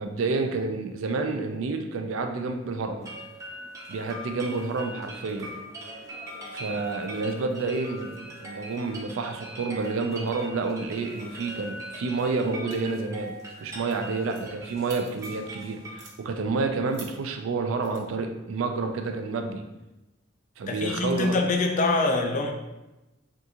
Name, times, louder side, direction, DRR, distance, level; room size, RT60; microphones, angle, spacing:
voice 1, 0.0-3.1 3.9-5.5 6.5-13.3 13.6-19.6 20.6-21.3, right 3 dB, 90° right, 5 dB, 0.4 m, -29 dB
sound 1, 3.0-16.0, right 1 dB, 15° right, 0.5 m, -41 dB
sound 2, 12.7-13.0 13.4-13.6 13.9-15.5 15.9-16.1 16.9-17.1 17.8-18.0, right 3 dB, 65° right, 0.9 m, -46 dB
voice 2, 20.6-22.5, left 3 dB, 40° left, 3 dB, 0.4 m, -24 dB
3.6 x 2.4 x 2.8 m, 1.0 s
head